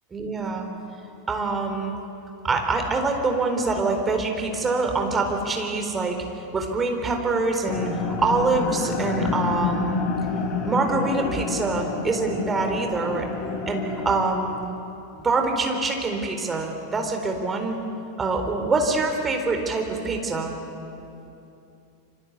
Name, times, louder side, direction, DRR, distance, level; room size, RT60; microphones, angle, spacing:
voice 1, 0.1-0.7 1.3-1.9 2.4-6.2 6.5-10.1 10.6-13.3 13.7-14.6 15.2-17.8 18.2-20.5, right 3 dB, 15° right, 3 dB, 4.2 m, -25 dB
sound 1, 7.7-14.4, left 5 dB, 35° left, 3.3 m, -28 dB
28.0 x 25.0 x 8.4 m, 2.8 s
figure-of-eight pair, 90°, 0 cm